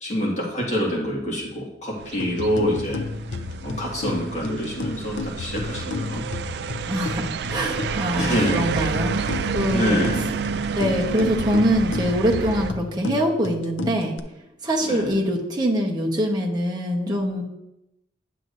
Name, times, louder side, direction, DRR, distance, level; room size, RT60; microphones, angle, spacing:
voice 1, 0.0-3.1 3.6-6.2 8.2-8.6 9.7-10.4 14.8-15.1, equal, 40° left, -3 dB, 1.9 m, -26 dB
sound 1, 2.0-12.7, right 6 dB, 60° right, 0.3 m, -30 dB
sound 2, 2.2-14.2, left 4 dB, 85° left, 0.5 m, -33 dB
voice 2, 6.9-10.0 10.7-14.1 14.6-17.4, equal, 20° right, -1 dB, 1.1 m, -24 dB
9.9 x 7.5 x 2.6 m, 0.88 s
head